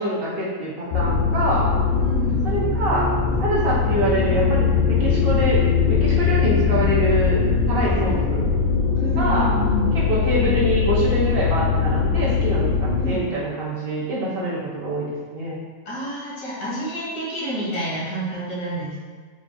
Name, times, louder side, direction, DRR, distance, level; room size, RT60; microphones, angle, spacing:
voice 1, 0.0-1.7 2.4-3.1 3.4-7.4 7.7-8.5 9.2-9.5 9.9-15.6, right 1 dB, 55° right, -6 dB, 0.9 m, -25 dB
sound 1, 0.9-13.1, left 5 dB, 60° left, 0.6 m, -21 dB
voice 2, 1.9-2.6 6.4-6.6 8.1-8.3 9.0-9.9 13.0-13.2 15.9-19.0, equal, 85° left, -8 dB, 1.8 m, -29 dB
4.1 x 2.3 x 3.7 m, 1.5 s
omnidirectional pair, 1.4 m